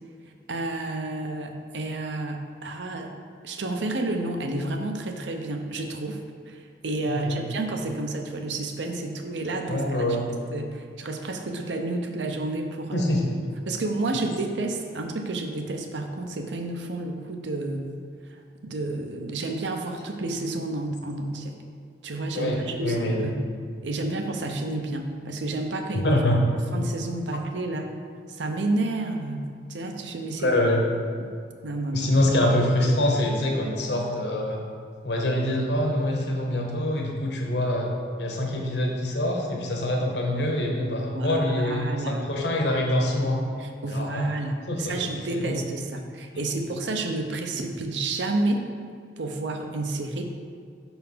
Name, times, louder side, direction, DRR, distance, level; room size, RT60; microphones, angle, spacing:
voice 1, 0.5-3.1 3.4-6.2 6.5-10.2 10.5-13.1 13.7-17.9 18.6-21.5 22.0-23.4 23.8-26.1 26.7-27.9 28.3-30.5 31.2-31.3 31.6-32.1 41.1-42.2 43.6-48.6 49.2-50.3, right 2 dB, 90° right, 4 dB, 0.7 m, -30 dB
voice 2, 7.1-7.4 9.7-10.2 12.9-13.2 22.3-23.3 26.0-26.4 30.4-30.8 31.9-34.6 35.0-37.9 38.2-43.4 43.9-44.3 44.7-45.0 45.3-45.6, left 1 dB, 70° left, 0 dB, 1.0 m, -25 dB
5.7 x 4.4 x 5.5 m, 2.2 s
head